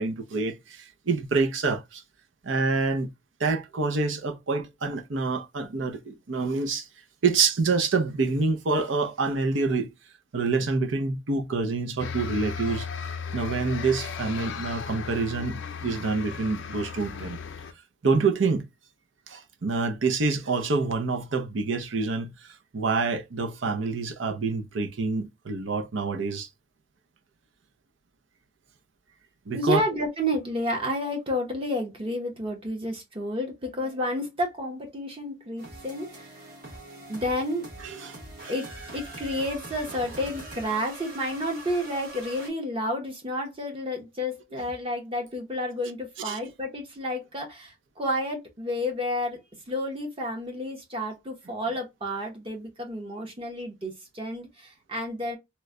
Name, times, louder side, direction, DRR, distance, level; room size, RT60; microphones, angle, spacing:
voice 1, 0.0-2.0 2.4-3.1 3.4-6.9 7.2-9.9 10.3-12.9 13.3-17.4 18.0-18.7 19.3-26.5 29.5-29.8 37.8-38.2 38.4-38.5 46.2-46.4, right 4 dB, 75° right, 0.6 m, -27 dB
sound 1, 12.0-17.7, left 6 dB, 70° left, 0.5 m, -36 dB
voice 2, 29.5-36.8 37.1-37.7 38.5-49.4 49.7-55.4, left 1 dB, 25° right, 0.9 m, -30 dB
sound 2, 35.6-42.5, right 2 dB, 45° right, 1.3 m, -43 dB
3.0 x 2.2 x 3.6 m
head